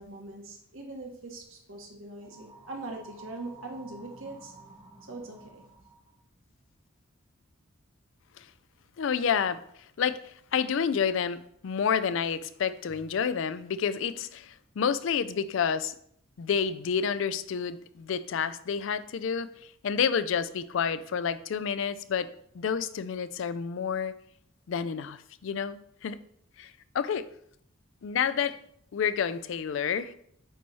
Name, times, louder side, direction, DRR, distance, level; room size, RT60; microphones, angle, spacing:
voice 1, 0.0-4.5 5.1-5.6, right 2 dB, 70° right, 1 dB, 1.3 m, -42 dB
sound 1, 2.2-6.2, right 3 dB, 20° right, 0.7 m, -52 dB
voice 2, 9.0-9.6 10.0-15.9 16.4-19.5 19.8-24.1 24.7-26.2 26.6-27.3 28.0-28.6 28.9-30.1, left 7 dB, 65° left, 14 dB, 0.4 m, -29 dB
9.0 x 3.1 x 4.2 m, 0.69 s
head